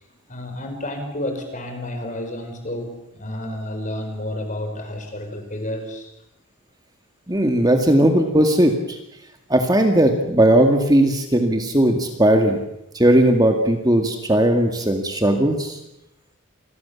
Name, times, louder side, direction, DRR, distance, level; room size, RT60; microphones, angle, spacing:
voice 1, 0.3-6.1, left 1 dB, 35° left, 5 dB, 5.1 m, -30 dB
voice 2, 7.3-9.0 9.5-12.6 12.9-15.8, right 1 dB, 15° right, 4 dB, 2.0 m, -17 dB
27.5 x 21.5 x 7.1 m, 0.86 s
head